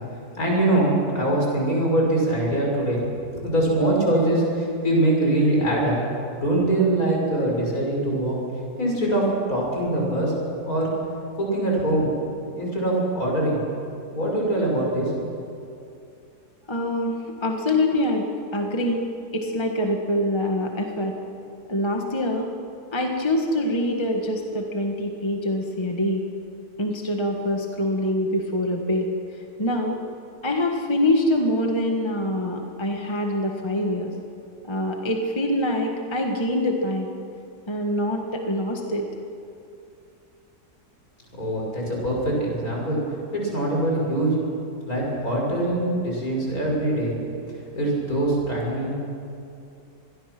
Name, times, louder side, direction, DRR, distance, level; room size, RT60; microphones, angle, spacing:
voice 1, 0.3-3.0 3.3-6.0 6.3-8.4 8.8-10.3 10.7-10.9 11.4-12.1 12.5-13.6 14.1-15.1 41.4-43.0 43.3-44.4 44.8-47.2 47.7-49.0, right 1 dB, 60° left, -2 dB, 6.4 m, -23 dB
voice 2, 16.7-19.0 19.3-21.1 21.7-22.5 22.9-26.2 26.8-29.1 29.6-30.0 30.4-34.1 34.6-37.1 37.7-39.1, left 1 dB, 15° left, 2 dB, 1.6 m, -25 dB
26.0 x 21.5 x 6.1 m, 2.6 s
omnidirectional pair, 1.7 m